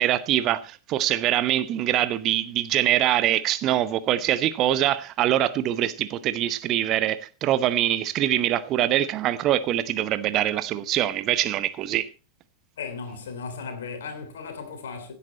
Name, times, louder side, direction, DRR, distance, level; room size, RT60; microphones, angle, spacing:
voice 1, 0.0-12.1, right 12 dB, 35° right, 0.8 m, -24 dB
voice 2, 12.8-15.1, left 5 dB, 60° left, 3.1 m, -36 dB
16.0 x 8.5 x 4.1 m
figure-of-eight pair, 90°, 0 cm